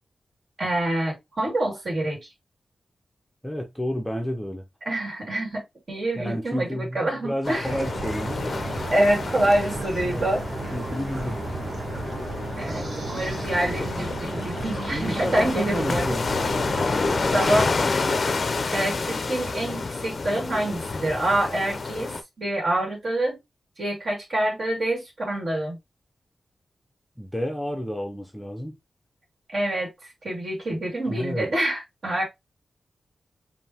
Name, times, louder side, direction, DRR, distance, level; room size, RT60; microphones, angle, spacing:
voice 1, 0.6-2.2 4.8-7.7 8.9-10.8 12.6-16.2 17.3-18.2 18.7-23.4 23.8-25.8 29.5-29.9 30.2-32.2, right 1 dB, 55° right, 2.3 m, -26 dB
voice 2, 3.4-4.6 6.1-8.4 10.0-10.3 10.7-11.4 14.9-16.4 27.2-28.8 31.1-31.5, equal, 5° left, 0.7 m, -30 dB
sound 1, 7.4-22.2, left 4 dB, 45° left, 0.5 m, -29 dB
sound 2, 7.6-17.7, right 2 dB, 70° right, 1.6 m, -33 dB
5.2 x 2.6 x 2.8 m
wide cardioid pair, 130°, 0 cm